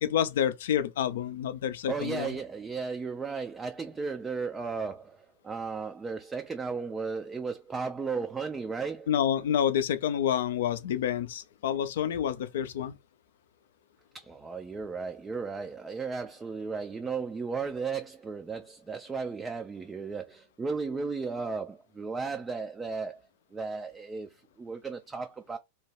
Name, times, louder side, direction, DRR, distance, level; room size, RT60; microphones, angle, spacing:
voice 1, 0.0-2.3 9.1-12.9, left 9 dB, 60° left, 0.4 m, -28 dB
voice 2, 1.9-9.1 14.1-23.2 23.5-25.6, right 4 dB, 15° right, 0.3 m, -35 dB
2.8 x 2.1 x 3.1 m
figure-of-eight pair, 90°, 0 cm